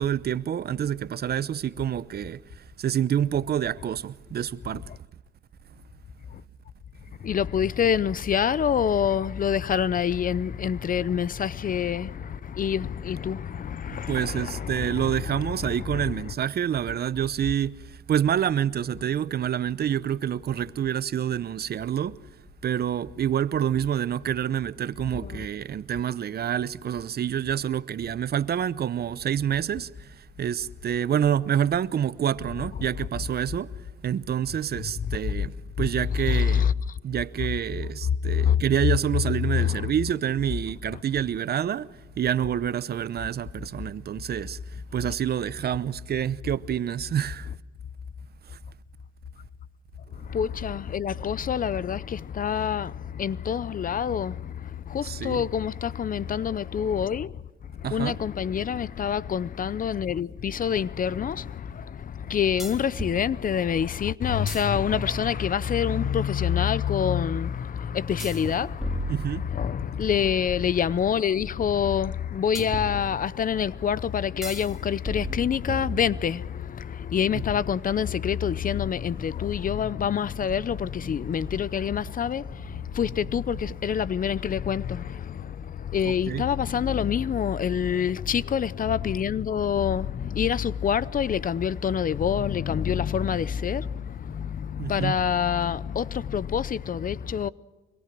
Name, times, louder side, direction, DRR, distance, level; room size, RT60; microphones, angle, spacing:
voice 1, 0.0-4.9 14.1-22.2 22.6-33.8 34.0-36.7 37.0-47.5 48.5-48.6 55.0-55.4 57.8-58.2 69.1-69.5 77.3-77.4 86.0-86.4 94.8-95.2, right 9 dB, 50° right, 0.8 m, -27 dB
voice 2, 7.2-16.3 25.2-25.5 35.1-35.2 36.1-37.0 38.2-38.6 39.5-39.9 50.1-57.4 57.7-97.5, left 8 dB, 45° left, 0.7 m, -27 dB
sound 1, 60.2-60.3 62.6-63.2 64.3-65.6 68.2-69.9 72.5-73.5 74.4-74.7 75.0-76.4, equal, ahead, 3.8 m, -34 dB
25.5 x 22.5 x 6.1 m
cardioid pair, 90°, 20 cm